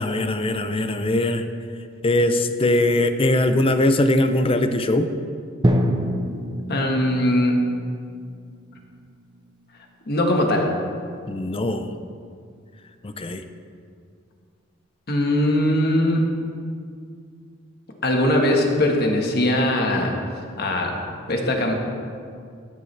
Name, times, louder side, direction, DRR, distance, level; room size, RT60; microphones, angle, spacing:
voice 1, 0.0-1.4 2.0-5.1 11.3-11.9 13.0-13.4, left 1 dB, 30° left, 9 dB, 0.5 m, -21 dB
Drum, 5.6-9.6, equal, 20° right, 0.7 m, -26 dB
voice 2, 6.7-7.7 10.1-10.7 15.1-16.2 18.0-20.1 20.6-20.9 21.3-21.7, left 1 dB, 55° left, 1 dB, 1.4 m, -20 dB
13.5 x 9.7 x 3.3 m, 2.2 s
head